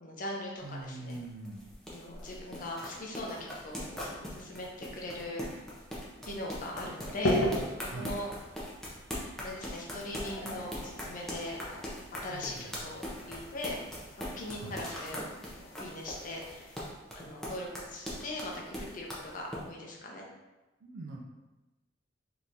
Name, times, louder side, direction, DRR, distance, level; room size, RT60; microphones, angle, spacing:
voice 1, 0.0-1.2 1.9-5.6 6.3-7.5 7.8-8.3 9.4-11.6 12.2-13.9 14.4-15.3 15.6-16.7 17.2-20.2, left 1 dB, 45° left, -1 dB, 0.6 m, -40 dB
sound 1, 0.6-19.6, equal, ahead, 0.5 m, -41 dB
voice 2, 0.6-1.6 7.9-8.1 12.3-12.9 14.6-14.9 17.2-17.3 20.8-21.2, right 2 dB, 70° right, 0 dB, 0.4 m, -43 dB
sound 2, 6.6-16.9, left 1 dB, 90° left, 0.5 m, -38 dB
3.6 x 2.8 x 2.6 m, 1.1 s
head